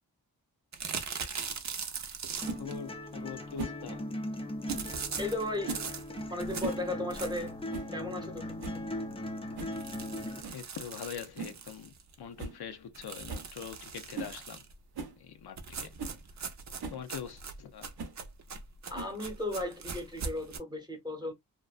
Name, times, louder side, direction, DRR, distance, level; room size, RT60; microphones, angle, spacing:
sound 1, 0.7-2.8 4.7-7.6 8.1-8.2 8.5-8.6 8.9-9.0 9.6-12.1 12.9-14.7 15.6-20.6, right 5 dB, 50° right, 0.5 m, -41 dB
sound 2, 2.4-10.4, left 1 dB, 15° left, 0.4 m, -39 dB
sound 3, 2.4-2.6 3.6-3.8 4.7-4.9 5.6-5.9 6.4-6.9 7.1-7.2 7.7-7.9 8.3-8.4 8.6-8.9 9.6-9.8 10.4-10.6 11.4-11.6 12.0-12.1 12.4-12.6 12.9-13.0 13.3-13.5 14.1-14.4 14.9-15.2 15.7-15.8 16.0-16.2 16.8-17.0 18.0-18.2 18.9-19.3, right 4 dB, 85° right, 0.7 m, -39 dB
voice 1, 2.6-4.1 10.5-14.6 15.2-15.9 16.9-17.9, left 8 dB, 85° left, 0.5 m, -43 dB
voice 2, 5.2-5.8 6.3-7.5 7.9-8.6 18.9-21.3, left 1 dB, 10° right, 0.8 m, -35 dB
2.5 x 2.2 x 2.3 m
wide cardioid pair, 95°, 37 cm